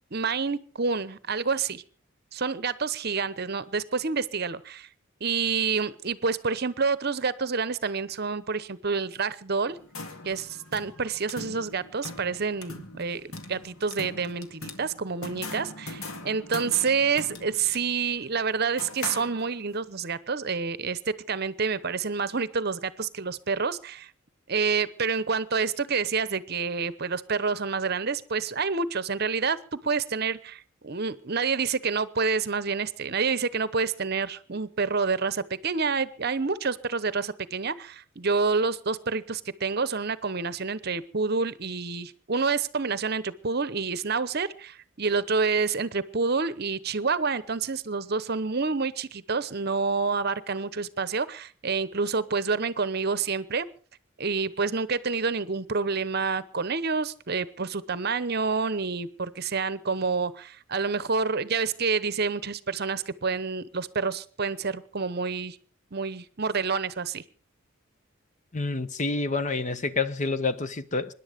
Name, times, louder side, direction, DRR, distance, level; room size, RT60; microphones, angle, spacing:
voice 1, 0.1-1.8 2.3-4.9 5.2-9.8 10.2-24.1 24.5-53.7 54.2-65.6 65.9-67.2, right 5 dB, 50° right, 0.8 m, -28 dB
sound 1, 9.7-19.8, left 3 dB, 85° left, 2.1 m, -41 dB
voice 2, 68.5-71.1, left 3 dB, 35° left, 0.8 m, -28 dB
25.0 x 11.0 x 5.1 m
head